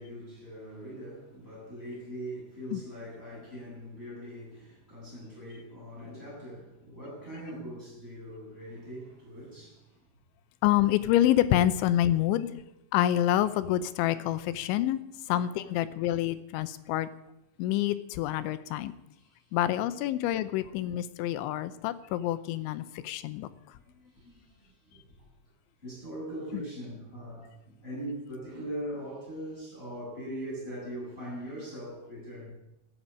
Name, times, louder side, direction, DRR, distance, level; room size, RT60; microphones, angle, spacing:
voice 1, 0.0-10.0 12.1-12.3 15.3-15.8 19.2-19.6 23.7-25.3 25.8-32.5, equal, 10° left, -6 dB, 7.9 m, -41 dB
voice 2, 10.6-12.6 12.9-15.0 15.3-17.1 17.6-18.9 19.5-23.5 26.5-26.6, left 13 dB, 85° left, 13 dB, 3.0 m, -27 dB
15.0 x 8.9 x 8.5 m, 0.86 s
omnidirectional pair, 5.4 m